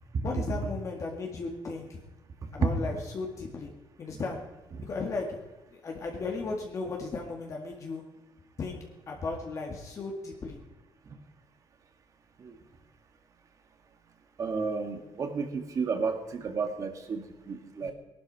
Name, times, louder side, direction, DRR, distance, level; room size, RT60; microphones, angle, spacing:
voice 1, 0.2-2.0 2.5-3.7 4.0-4.4 4.8-5.4 5.7-8.0 8.6-8.8 9.1-10.6 17.8-17.9, left 3 dB, 40° left, 1 dB, 2.0 m, -35 dB
voice 2, 14.4-17.9, right 5 dB, 40° right, 6 dB, 1.9 m, -31 dB
19.0 x 11.5 x 4.8 m, 1.1 s
cardioid pair, 145°, 8 cm